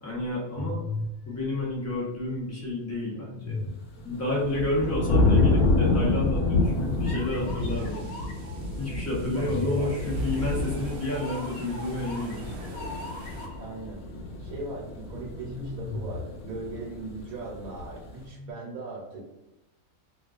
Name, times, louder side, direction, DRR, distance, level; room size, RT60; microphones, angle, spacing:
voice 1, 0.0-0.8 1.3-3.6 4.0-8.0 8.8-12.5, left 2 dB, 25° left, -6 dB, 0.3 m, -30 dB
sound 1, 0.6-2.4 3.1-4.1 5.4-6.4 7.0-8.7 9.3-13.9 15.2-17.0 18.1-18.5, left 3 dB, 85° left, 1.0 m, -38 dB
sound 2, 4.0-18.2, left 2 dB, 65° left, 0.8 m, -28 dB
sound 3, 6.6-13.5, right 2 dB, 65° right, 0.7 m, -46 dB
voice 2, 9.3-10.1 13.6-14.0 14.4-19.3, right 2 dB, 80° right, -4 dB, 1.1 m, -38 dB
2.4 x 2.2 x 2.3 m, 0.99 s
omnidirectional pair, 1.4 m